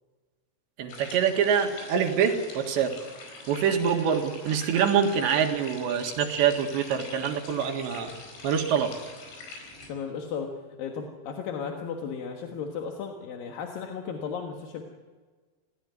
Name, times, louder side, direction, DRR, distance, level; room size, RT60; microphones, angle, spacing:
voice 1, 0.8-2.9 3.5-8.1 8.4-8.9, right 7 dB, 75° right, 4 dB, 3.9 m, -25 dB
sound 1, 0.9-9.9, left 3 dB, 80° left, 7.2 m, -44 dB
voice 2, 9.9-10.5 10.8-14.8, left 6 dB, 60° left, 2 dB, 2.8 m, -35 dB
26.0 x 17.5 x 9.5 m, 1.4 s
omnidirectional pair, 5.3 m